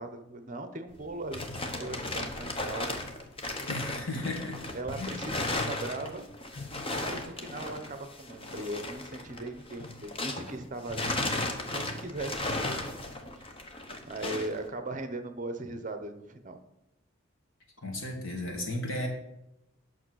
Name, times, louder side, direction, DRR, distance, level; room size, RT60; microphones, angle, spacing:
voice 1, 0.0-3.0 4.7-6.2 6.9-12.8 14.0-16.6, right 2 dB, 40° right, 8 dB, 0.8 m, -39 dB
sound 1, 0.9-10.6 10.9-14.6, left 2 dB, 25° left, 1.0 m, -35 dB
voice 2, 3.7-4.6 5.0-5.2 17.8-19.1, left 1 dB, 75° left, 1 dB, 2.3 m, -34 dB
8.7 x 6.1 x 6.3 m, 0.90 s
head